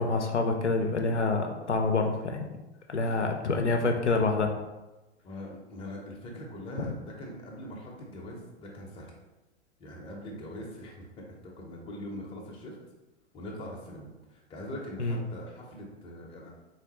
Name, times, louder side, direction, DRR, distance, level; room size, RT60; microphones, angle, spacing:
voice 1, 0.0-2.5 2.9-4.5 15.0-15.2, left 3 dB, 85° left, 3 dB, 0.5 m, -27 dB
voice 2, 5.2-9.1 9.8-12.8 13.3-16.5, left 1 dB, 15° left, -2 dB, 0.7 m, -42 dB
3.6 x 3.0 x 2.9 m, 1.1 s
figure-of-eight pair, 95°, 34 cm